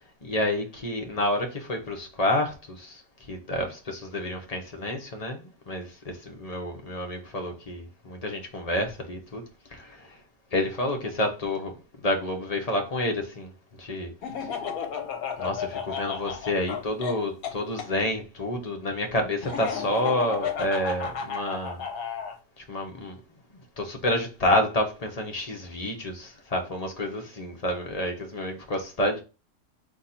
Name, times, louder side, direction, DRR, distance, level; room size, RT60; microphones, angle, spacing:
voice 1, 0.2-3.0 3.3-9.4 9.7-10.2 10.5-13.5 13.8-14.1 14.4-14.5 15.4-21.8 22.6-23.2 23.8-29.2, left 1 dB, 40° left, 0.5 m, -29 dB
Laughter, 14.2-17.9 19.4-22.4, left 7 dB, 65° left, 1.1 m, -33 dB
4.0 x 2.9 x 4.2 m
omnidirectional pair, 1.7 m